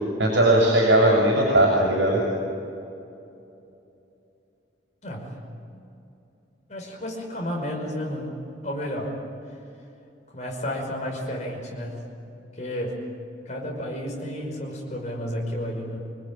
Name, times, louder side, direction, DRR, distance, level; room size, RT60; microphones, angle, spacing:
voice 1, 0.2-2.2, right 1 dB, 75° right, -3 dB, 6.9 m, -18 dB
voice 2, 5.0-5.4 6.7-8.3 8.6-9.1 10.3-12.0 12.6-13.0 13.5-16.0, equal, 40° left, 0 dB, 5.6 m, -31 dB
26.5 x 20.0 x 9.1 m, 2.7 s
head